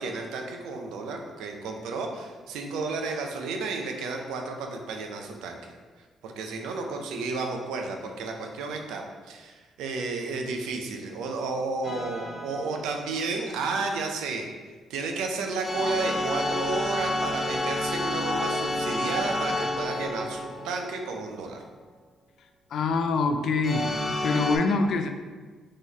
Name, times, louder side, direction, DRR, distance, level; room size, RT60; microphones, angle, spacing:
voice 1, 0.0-5.7 6.2-14.5 14.9-21.6, right 3 dB, 90° right, 3 dB, 0.6 m, -32 dB
sound 1, 11.8-12.9 15.6-21.3 23.6-24.6, left 1 dB, 20° left, 0.9 m, -30 dB
voice 2, 22.7-23.9 24.2-25.1, left 4 dB, 65° left, 6 dB, 0.4 m, -24 dB
3.9 x 3.2 x 4.0 m, 1.4 s
cardioid pair, 90°, 0 cm